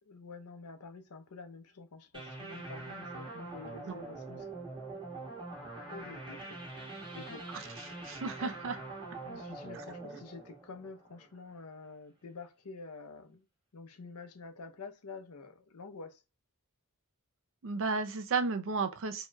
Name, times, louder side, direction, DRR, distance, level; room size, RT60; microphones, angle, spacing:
voice 1, 0.0-4.5 5.9-6.6 7.1-7.5 9.2-13.5 13.7-16.2, left 4 dB, 85° left, 0.7 m, -48 dB
sound 1, 2.1-11.5, right 2 dB, 20° right, 1.5 m, -44 dB
voice 2, 7.5-8.8 17.6-19.3, right 4 dB, 60° right, 0.6 m, -34 dB
4.5 x 2.9 x 2.2 m
head